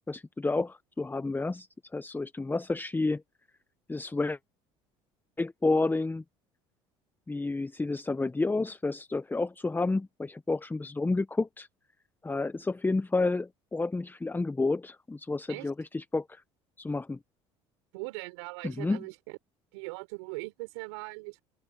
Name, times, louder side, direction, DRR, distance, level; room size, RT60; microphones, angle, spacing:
voice 1, 0.0-1.7 1.9-3.2 3.9-4.4 5.4-6.2 7.3-11.7 12.2-16.4 16.8-17.2 18.6-19.0, left 3 dB, 15° left, 1.1 m, -30 dB
voice 2, 17.9-19.4 19.7-21.4, right 28 dB, 80° right, 4.3 m, -40 dB
open air
hypercardioid pair, 70°, 14 cm